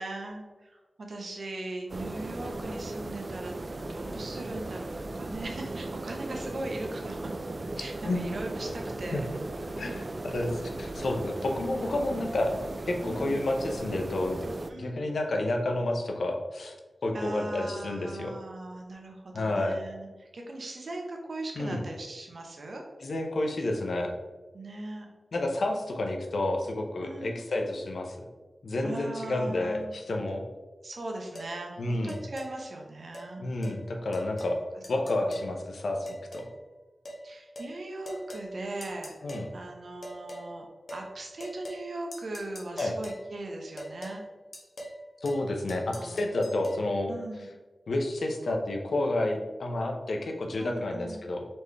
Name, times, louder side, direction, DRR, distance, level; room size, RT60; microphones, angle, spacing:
voice 1, 0.0-3.6 3.9-7.3 7.8-9.2 13.0-13.4 14.7-15.1 17.1-22.8 24.5-25.1 27.0-27.4 28.8-30.0 30.8-33.4 35.2-35.5 37.2-39.1 39.5-44.2 45.8-46.3 47.1-47.5 50.6-51.3, right 2 dB, 70° right, 1 dB, 0.8 m, -39 dB
sound 1, 1.9-14.7, right 2 dB, 50° right, 0.3 m, -37 dB
voice 2, 9.8-12.5 12.9-14.4 14.8-16.7 17.0-18.3 19.3-19.8 21.6-21.8 23.0-24.1 25.3-28.2 28.6-30.4 31.8-32.2 33.4-34.6 34.9-36.5 39.2-39.5 42.8-42.9 45.2-47.1 47.9-51.5, left 2 dB, 85° left, 3 dB, 0.6 m, -30 dB
sound 2, 31.3-31.5 32.1-32.5 33.1-33.3 33.6-33.8 34.1-34.6 34.8-35.5 36.1-36.5 37.0-37.2 37.6-37.7 38.1-38.5 38.8-39.5 40.0-40.5 40.9-41.1 41.4-41.9 42.1-43.2 43.8-44.2 44.5-45.0 45.2-45.4 45.7-46.8, equal, 65° left, 1.0 m, -42 dB
4.2 x 3.2 x 3.4 m, 1.2 s
wide cardioid pair, 65°, 0 cm